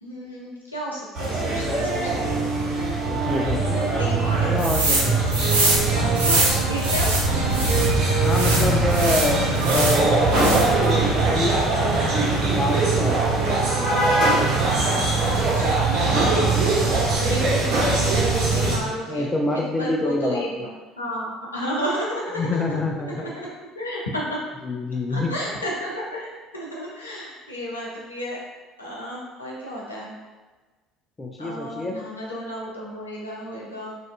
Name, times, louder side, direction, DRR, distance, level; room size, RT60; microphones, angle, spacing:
voice 1, 0.0-2.4 3.9-5.1 5.9-7.4 15.3-16.5 17.2-19.3 19.5-22.8 23.1-23.5 23.8-24.2 25.1-28.4 28.8-30.1 31.4-33.9, equal, 85° left, -5 dB, 0.5 m, -32 dB
sound 1, 1.1-18.8, right 3 dB, 50° right, 0.7 m, -21 dB
voice 2, 3.1-3.8 4.4-5.2 8.2-12.0 12.4-13.3 13.7-13.9 19.1-20.7 22.4-23.3 24.6-25.4 31.2-32.0, left 2 dB, 20° left, 1 dB, 0.3 m, -27 dB
sound 2, 4.6-5.1 5.3-7.9 8.3-10.0 10.3-10.8, right 2 dB, 80° right, 0.4 m, -24 dB
2.5 x 2.2 x 2.4 m, 1.3 s
figure-of-eight pair, 60°, 0 cm